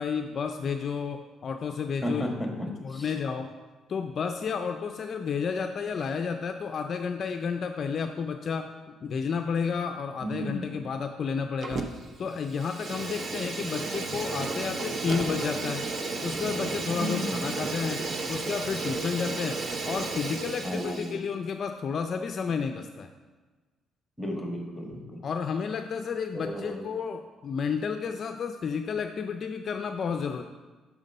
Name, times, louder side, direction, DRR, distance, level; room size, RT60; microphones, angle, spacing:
voice 1, 0.0-2.2 2.8-3.5 3.9-8.7 9.0-11.9 12.2-15.8 16.2-18.0 18.3-23.1 25.2-30.4, left 6 dB, 45° left, 6 dB, 0.4 m, -31 dB
voice 2, 2.0-2.5 2.9-3.1 10.2-10.7 16.9-17.4 20.6-21.2 24.2-25.2 26.3-26.8, equal, 5° left, 1 dB, 1.3 m, -33 dB
Fire, 11.6-12.1 12.4-21.2, right 3 dB, 40° right, 0.6 m, -33 dB
6.1 x 5.0 x 5.4 m, 1.3 s
cardioid pair, 115°, 0 cm